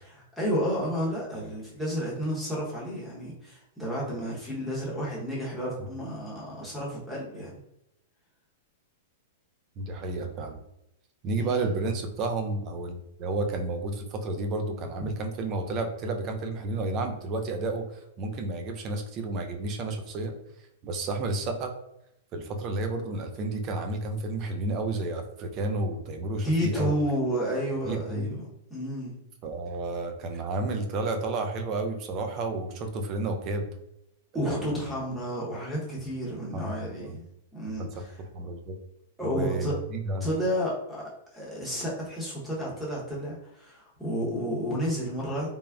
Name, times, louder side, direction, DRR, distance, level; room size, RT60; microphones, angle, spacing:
voice 1, 0.0-7.5 11.4-11.7 26.4-28.4 28.7-29.2 34.3-37.2 37.5-38.1 39.2-39.7 40.2-41.0 41.3-45.5, equal, ahead, -6 dB, 0.8 m, -31 dB
voice 2, 9.8-10.6 11.2-20.3 20.8-21.7 22.3-27.0 27.8-28.3 29.4-33.7 34.9-35.0 36.5-37.1 37.8-38.8 39.2-40.2, right 2 dB, 35° right, 5 dB, 0.4 m, -31 dB
3.5 x 2.0 x 2.3 m, 0.83 s
hypercardioid pair, 145°, 0 cm